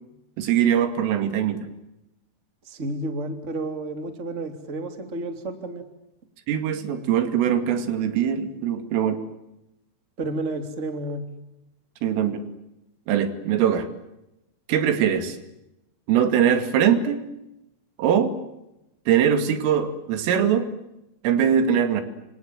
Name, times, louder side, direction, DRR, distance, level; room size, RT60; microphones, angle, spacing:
voice 1, 0.4-1.7 6.5-9.2 12.0-12.4 13.1-13.9 14.7-15.4 16.1-17.2 18.0-18.3 19.1-20.7 21.2-22.0, right 8 dB, 85° right, 9 dB, 5.0 m, -22 dB
voice 2, 2.6-5.8 10.2-11.2, right 2 dB, 20° right, 7 dB, 2.5 m, -31 dB
29.0 x 27.0 x 7.5 m, 0.92 s
omnidirectional pair, 5.7 m